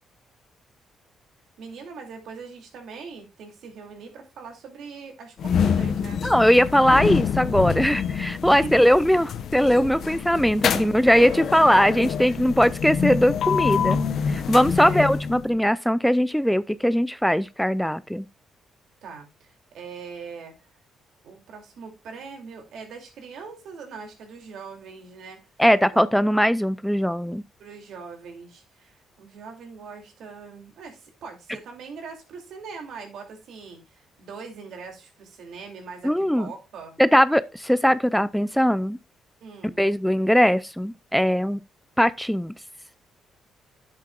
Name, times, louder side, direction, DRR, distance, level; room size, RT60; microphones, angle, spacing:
voice 1, 1.6-6.2 8.5-8.7 10.0-10.1 14.7-15.1 19.0-20.8 21.2-25.4 25.9-26.1 27.6-37.0 39.4-39.8, right 5 dB, 75° right, 2.6 m, -41 dB
sound 1, 5.4-15.6, left 7 dB, 65° left, 0.8 m, -26 dB
voice 2, 6.2-14.0 14.3-18.3 25.6-27.4 36.0-36.5 37.0-39.0 39.8-41.6 42.0-42.5, equal, ahead, 0.4 m, -20 dB
10.5 x 7.6 x 2.3 m
cardioid pair, 90°, 0 cm